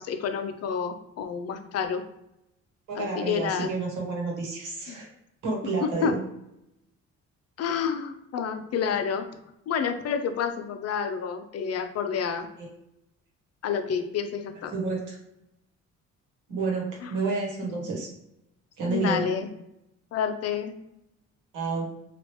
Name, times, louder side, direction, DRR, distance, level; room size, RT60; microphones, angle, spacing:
voice 1, 0.0-2.0 3.0-3.7 4.9-5.0 5.8-6.1 7.6-9.3 9.7-12.5 13.6-14.7 17.0-17.2 17.6-17.8 18.9-19.5 20.1-20.7, left 7 dB, 55° left, 8 dB, 0.5 m, -29 dB
voice 2, 2.9-5.1 5.4-6.2 12.6-12.7 14.7-15.2 16.5-18.1 18.8-19.3 21.5-21.9, right 3 dB, 90° right, -1 dB, 1.1 m, -30 dB
3.0 x 2.4 x 3.1 m, 0.84 s
cardioid pair, 90°, 30 cm